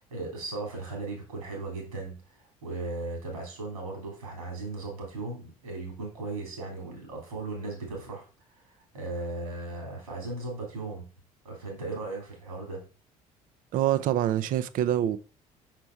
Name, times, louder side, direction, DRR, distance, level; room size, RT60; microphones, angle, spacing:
voice 1, 0.0-11.1 11.4-12.9, right 3 dB, 80° right, 3.4 m, -37 dB
voice 2, 13.7-15.2, right 11 dB, 50° right, 0.6 m, -25 dB
6.1 x 5.9 x 4.7 m
figure-of-eight pair, 55°, 18 cm